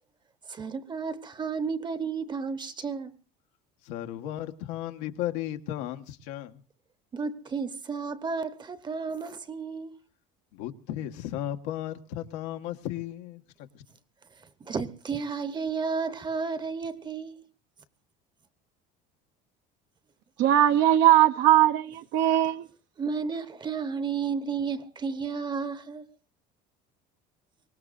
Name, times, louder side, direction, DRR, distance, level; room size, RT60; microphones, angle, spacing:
voice 1, 0.5-3.1 7.1-9.9 14.6-17.3 23.0-26.1, right 5 dB, 20° right, 0.9 m, -32 dB
voice 2, 3.8-6.6 10.5-13.4 13.7-13.8, left 12 dB, 90° left, 1.3 m, -35 dB
voice 3, 20.4-22.6, right 12 dB, 60° right, 0.7 m, -20 dB
23.5 x 19.0 x 2.5 m
cardioid pair, 145°, 21 cm